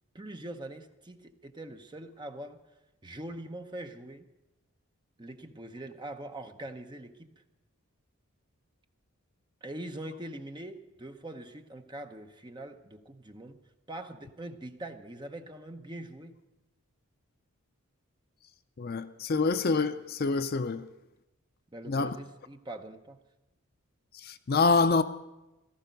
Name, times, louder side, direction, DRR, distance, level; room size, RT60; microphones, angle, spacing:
voice 1, 0.1-2.6 3.0-4.3 5.2-7.4 9.6-13.6 13.9-16.4 21.7-23.2, right 1 dB, 20° right, 0.8 m, -43 dB
voice 2, 18.8-20.8 21.9-22.1 24.2-25.0, left 4 dB, 40° left, 0.5 m, -26 dB
16.5 x 14.0 x 5.2 m
head